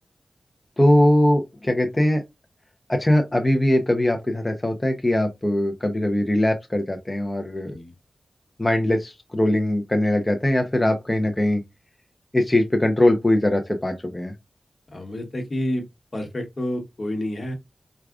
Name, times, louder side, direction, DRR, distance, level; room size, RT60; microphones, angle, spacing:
voice 1, 0.8-2.2 2.9-7.7 8.6-11.6 12.3-14.3, left 1 dB, 20° left, 0.6 m, -21 dB
voice 2, 14.9-15.8 16.1-17.5, left 1 dB, 50° left, 1.1 m, -29 dB
4.7 x 2.3 x 2.4 m
wide cardioid pair, 65°, 0 cm